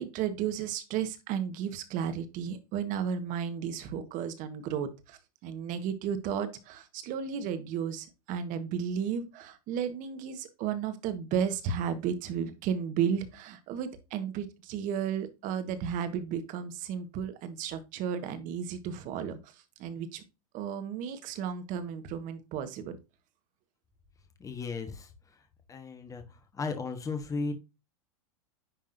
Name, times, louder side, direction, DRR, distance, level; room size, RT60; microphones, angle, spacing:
voice 1, 0.0-19.5 19.8-20.2 20.5-23.0, right 8 dB, 45° right, 10 dB, 1.3 m, -33 dB
voice 2, 24.4-25.1 25.7-26.2 26.5-27.5, left 4 dB, 15° left, 7 dB, 1.3 m, -35 dB
10.0 x 3.5 x 2.6 m, 0.26 s
hypercardioid pair, 110°, 19 cm